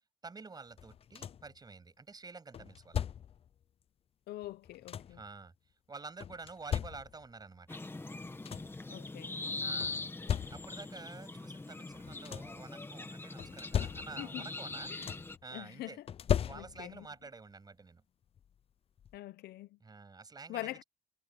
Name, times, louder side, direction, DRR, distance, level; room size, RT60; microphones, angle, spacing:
voice 1, 0.2-3.0 5.1-5.5 5.9-7.8 9.6-10.0 10.5-14.9 15.4-16.0 16.5-18.0 19.8-20.8, right 4 dB, 25° right, 7.9 m, -49 dB
sound 1, 0.8-1.6 2.5-3.5 4.4-5.3 6.2-7.4 8.0-8.1 8.3-8.9 9.8-11.0 11.9-12.7 13.4-14.4 14.7-15.4 16.1-17.1 18.4-18.5 19.0-19.2, left 9 dB, 35° left, 0.5 m, -38 dB
voice 2, 4.3-5.2 8.9-9.4 14.2-14.5 14.9-15.1 15.5-16.0 16.5-17.1 19.1-19.8 20.5-20.8, left 15 dB, 70° left, 0.8 m, -44 dB
sound 2, 7.7-15.4, left 3 dB, 15° left, 1.7 m, -42 dB
cardioid pair, 110°, 17 cm